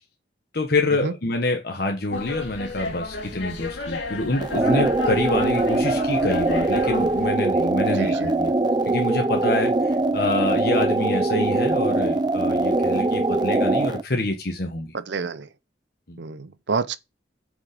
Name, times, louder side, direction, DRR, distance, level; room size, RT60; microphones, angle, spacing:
voice 1, 0.5-8.5 8.9-14.9 16.1-16.2, left 2 dB, 55° left, 1.2 m, -26 dB
sound 1, 2.1-7.3, left 3 dB, 90° left, 2.4 m, -32 dB
sound 2, 4.4-14.0, right 2 dB, 25° right, 0.5 m, -22 dB
voice 2, 8.0-8.3 14.9-15.5 16.2-17.0, right 4 dB, 75° right, 0.6 m, -28 dB
8.3 x 5.3 x 5.2 m
head